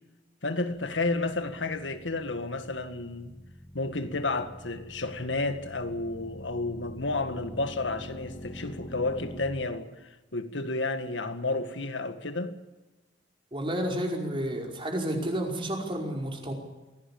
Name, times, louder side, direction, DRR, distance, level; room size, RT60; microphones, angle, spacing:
voice 1, 0.4-3.3 3.7-9.9 10.3-12.6, left 2 dB, 75° left, 1.9 m, -31 dB
sound 1, 0.8-9.4, equal, 35° left, 3.4 m, -46 dB
voice 2, 13.5-16.5, right 1 dB, 30° right, 5.2 m, -31 dB
24.5 x 17.5 x 8.6 m
head